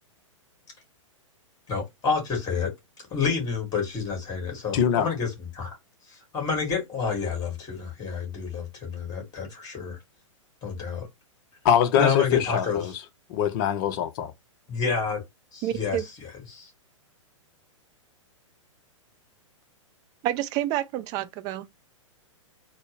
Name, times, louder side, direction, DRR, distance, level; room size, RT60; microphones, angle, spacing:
voice 1, 1.7-2.7 3.1-5.7 6.3-10.0 10.6-11.1 12.0-12.9 14.7-15.2 15.5-16.0 16.5-16.7, left 5 dB, 20° left, 2.2 m, -29 dB
voice 2, 4.7-5.1 11.6-12.9 13.3-14.3, left 9 dB, 40° left, 0.6 m, -23 dB
voice 3, 15.6-16.1 20.2-21.7, right 13 dB, 25° right, 0.3 m, -28 dB
4.2 x 2.0 x 3.1 m
figure-of-eight pair, 110°, 17 cm